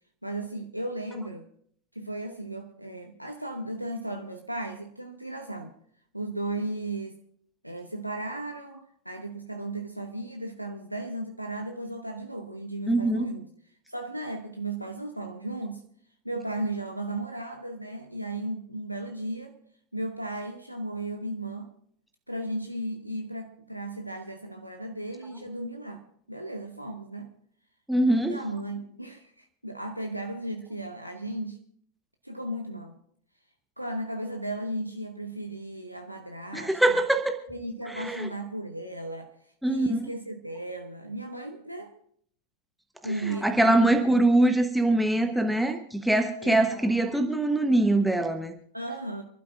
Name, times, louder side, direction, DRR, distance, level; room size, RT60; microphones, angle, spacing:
voice 1, 0.2-1.4 1.9-5.7 6.1-7.2 7.6-13.5 13.9-15.8 16.2-19.6 19.9-21.7 22.3-26.0 26.3-27.3 28.2-31.6 32.2-33.0 33.8-36.8 37.5-41.9 43.0-43.7 44.1-44.2 46.4-46.9 48.7-49.2, right 1 dB, 90° right, 4 dB, 0.9 m, -35 dB
voice 2, 12.9-13.3 27.9-28.4 36.5-37.4 37.9-38.3 39.6-40.1 43.2-48.6, right 1 dB, ahead, 5 dB, 1.0 m, -23 dB
28.5 x 12.0 x 2.5 m, 0.65 s
figure-of-eight pair, 90°, 0 cm